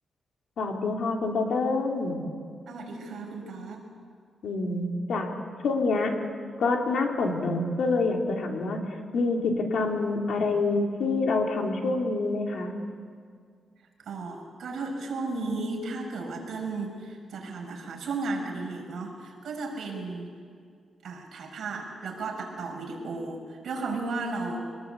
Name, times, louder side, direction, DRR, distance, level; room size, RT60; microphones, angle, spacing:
voice 1, 0.6-2.3 4.4-5.3 5.6-6.2 6.6-8.8 9.1-12.7, left 3 dB, 65° left, 2 dB, 3.2 m, -26 dB
voice 2, 2.7-3.9 14.0-20.3 21.0-24.6, right 3 dB, 60° right, 0 dB, 6.2 m, -34 dB
24.5 x 20.5 x 8.3 m, 2.1 s
wide cardioid pair, 160°, 0 cm